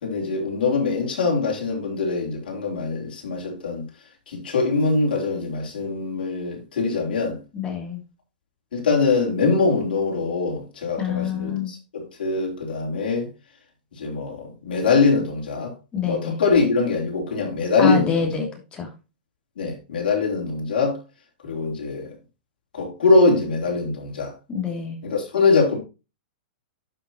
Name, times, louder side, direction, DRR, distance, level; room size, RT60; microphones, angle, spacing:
voice 1, 0.0-7.4 8.7-13.3 13.9-15.7 16.0-18.3 19.6-21.0 21.4-22.1 22.7-24.3 25.0-25.8, left 4 dB, 75° left, 3.8 m, -23 dB
voice 2, 7.5-8.0 11.0-11.7 15.9-16.4 17.8-18.9 24.5-25.0, left 7 dB, 20° left, 2.9 m, -27 dB
11.5 x 6.0 x 3.1 m
hypercardioid pair, 135°, 5 cm